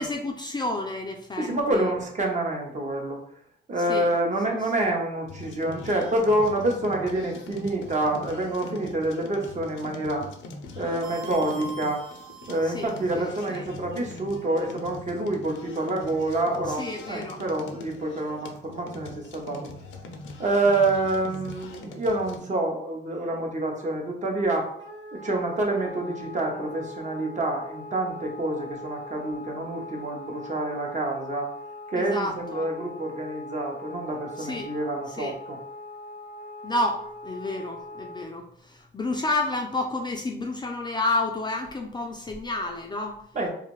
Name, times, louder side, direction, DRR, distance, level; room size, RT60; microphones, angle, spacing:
voice 1, 0.0-1.9 3.9-4.1 4.5-4.6 12.6-13.2 13.5-13.7 16.7-17.4 31.9-32.7 34.4-34.7 35.1-35.3 36.6-43.3, left 2 dB, 20° left, 2 dB, 0.4 m, -30 dB
voice 2, 1.4-3.2 3.7-10.3 10.8-12.1 12.5-19.7 20.4-24.7 25.1-31.5 31.9-35.6 43.3-43.5, right 2 dB, 35° right, 1 dB, 0.8 m, -27 dB
sound 1, 5.3-22.4, left 2 dB, 75° left, 0.5 m, -42 dB
sound 2, 11.0-13.4, right 1 dB, 90° right, 0.6 m, -42 dB
Wind instrument woodwind instrument, 24.8-38.3, left 1 dB, 70° right, 1.1 m, -41 dB
2.5 x 2.4 x 3.1 m, 0.65 s
cardioid pair, 90°, 20 cm